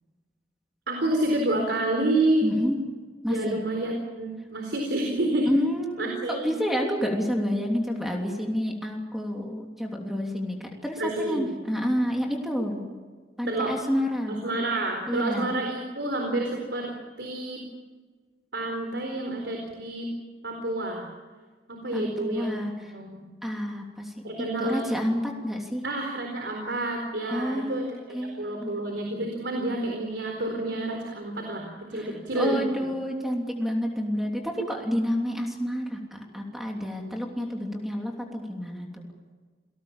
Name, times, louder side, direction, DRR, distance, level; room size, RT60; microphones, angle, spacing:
voice 1, 0.9-2.5 3.3-5.5 6.0-6.5 11.0-11.5 13.5-13.7 14.3-16.9 17.2-17.6 18.5-20.1 20.4-21.1 21.7-23.2 24.2-24.9 25.8-32.9, right 1 dB, 90° right, 2 dB, 4.2 m, -29 dB
voice 2, 2.4-2.8 3.2-3.6 5.5-12.8 13.4-14.4 15.1-15.5 21.9-22.7 23.4-25.8 27.3-28.8 31.9-39.0, equal, ahead, 0 dB, 3.1 m, -29 dB
28.5 x 19.5 x 7.3 m, 1.5 s
head